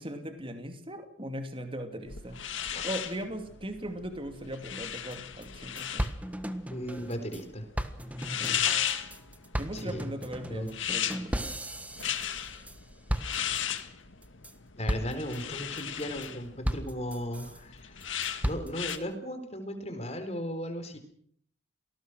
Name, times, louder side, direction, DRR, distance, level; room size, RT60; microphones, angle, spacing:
voice 1, 0.0-2.4 2.8-6.1 8.4-8.7 9.6-11.5, right 1 dB, 25° right, 7 dB, 2.7 m, -39 dB
sound 1, 2.1-19.0, left 9 dB, 85° left, 2.0 m, -36 dB
sound 2, 5.1-5.2 5.4-5.5 5.8-7.4 7.8-12.8 13.1-13.8 14.2-14.5 14.9-15.4 15.8-16.3 16.6-17.6 18.0-19.0, equal, 10° right, 1.4 m, -35 dB
voice 2, 6.7-7.7 9.7-10.1 10.5-10.7 14.8-18.0 18.4-21.0, equal, 35° left, 8 dB, 4.1 m, -36 dB
28.0 x 19.0 x 6.4 m, 0.64 s
head